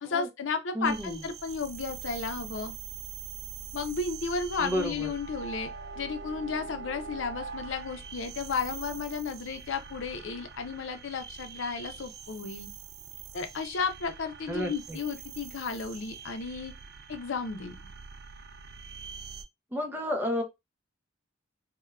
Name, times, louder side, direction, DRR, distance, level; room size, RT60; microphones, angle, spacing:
voice 1, 0.0-2.8 3.7-5.7 6.0-12.7 13.3-16.7 17.1-17.8, left 5 dB, 85° left, 0.5 m, -33 dB
voice 2, 0.7-1.2 4.6-5.1 14.5-15.0 19.7-20.4, equal, 10° right, 0.5 m, -31 dB
sound 1, 0.8-19.4, right 6 dB, 60° right, 0.3 m, -43 dB
3.4 x 2.2 x 2.3 m
head